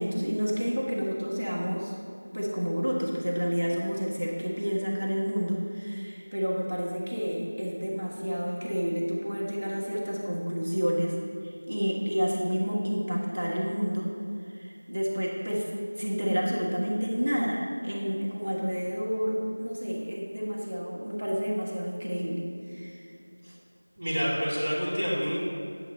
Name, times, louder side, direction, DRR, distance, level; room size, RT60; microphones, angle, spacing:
voice 1, 0.0-1.9 2.3-11.2 11.4-14.1 14.4-15.7 15.9-22.4 22.7-23.0 23.4-23.6, equal, 35° right, -4 dB, 1.3 m, -30 dB
voice 2, 24.0-25.4, equal, ahead, -25 dB, 0.8 m, -28 dB
10.0 x 7.9 x 3.1 m, 2.5 s
figure-of-eight pair, 180°, 0 cm